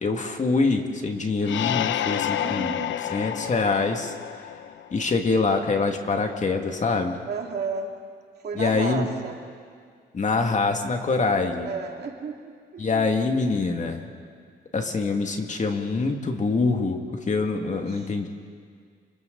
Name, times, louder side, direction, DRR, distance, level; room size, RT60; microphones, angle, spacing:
voice 1, 0.0-2.8 3.1-4.1 4.9-7.2 8.6-9.1 10.1-11.7 12.8-14.0 14.7-17.0 17.3-18.3, left 3 dB, 35° left, 3 dB, 2.3 m, -24 dB
sound 1, 1.4-5.0, left 11 dB, 70° left, 0.8 m, -29 dB
voice 2, 2.3-3.2 7.3-7.9 8.4-9.4 11.6-13.1 17.7-18.1, right 5 dB, 55° right, 2 dB, 2.7 m, -34 dB
29.0 x 26.0 x 4.0 m, 2.1 s
cardioid pair, 90°, 20 cm